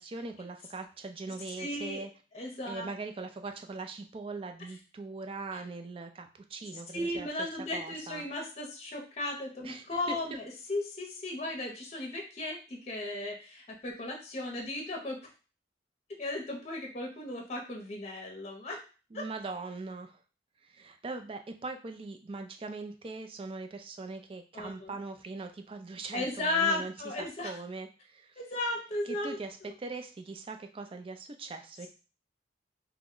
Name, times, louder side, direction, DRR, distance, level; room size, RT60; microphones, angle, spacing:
voice 1, 0.0-2.1 2.6-7.3 7.7-8.2 9.6-10.2 19.1-20.2 20.6-26.9 27.2-28.3 29.1-31.9, right 3 dB, 30° right, 6 dB, 0.3 m, -41 dB
voice 2, 1.6-2.0 2.3-2.9 5.5-5.6 6.6-15.2 16.2-18.8 19.1-19.2 24.5-24.9 26.1-27.6 28.4-29.8, left 2 dB, 35° left, 0 dB, 0.6 m, -35 dB
2.9 x 2.1 x 3.7 m, 0.35 s
head